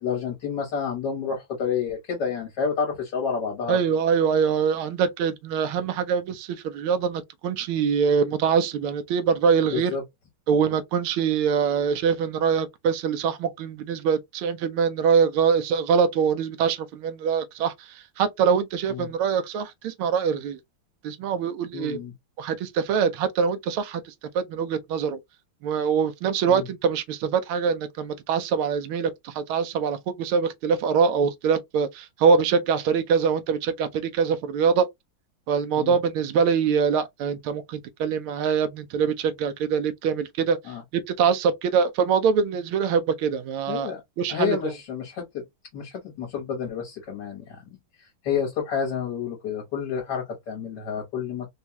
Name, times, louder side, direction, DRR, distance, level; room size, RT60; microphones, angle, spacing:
voice 1, 0.0-3.8 9.7-10.0 18.9-19.1 21.7-22.1 26.5-26.7 35.8-35.9 40.7-40.8 43.7-44.0 44.3-45.4 45.7-47.6 48.0-51.5, left 6 dB, 60° left, 1.7 m, -29 dB
voice 2, 3.7-9.9 10.5-20.6 21.0-22.0 22.4-24.0 24.3-25.2 25.6-34.9 35.5-40.6 40.9-43.9 44.2-44.7, right 6 dB, 90° right, 1.6 m, -24 dB
4.2 x 2.3 x 2.8 m
omnidirectional pair, 2.3 m